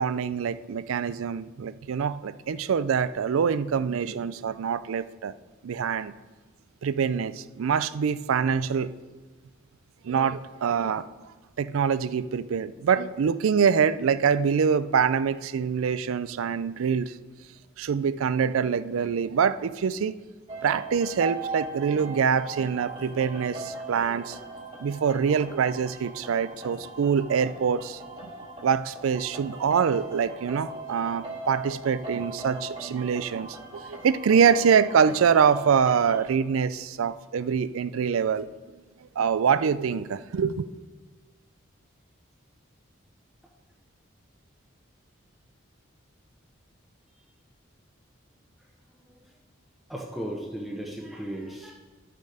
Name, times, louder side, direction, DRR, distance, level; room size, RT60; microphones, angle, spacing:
voice 1, 0.0-5.3 5.6-6.1 6.8-8.9 10.0-11.0 11.6-17.1 17.8-20.1 20.6-24.4 24.8-28.0 28.6-38.5 39.2-40.7, right 6 dB, 90° right, 0.4 m, -25 dB
sound 1, 20.5-36.3, right 2 dB, 25° right, 1.7 m, -39 dB
voice 2, 48.9-49.3 49.9-51.7, right 1 dB, ahead, 0.9 m, -36 dB
10.5 x 6.7 x 4.9 m
head